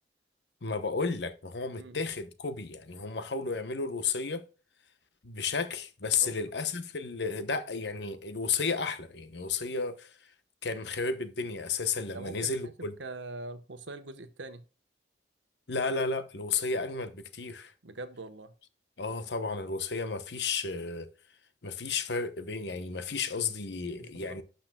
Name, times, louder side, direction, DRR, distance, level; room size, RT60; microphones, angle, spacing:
voice 1, 0.6-4.4 5.2-10.2 10.6-12.9 15.7-17.7 19.0-21.1 21.6-24.4, left 4 dB, 70° left, 0.9 m, -33 dB
voice 2, 12.1-12.7 13.0-14.6 17.8-18.5 24.0-24.4, right 2 dB, 85° right, 1.1 m, -43 dB
12.0 x 5.8 x 2.2 m
head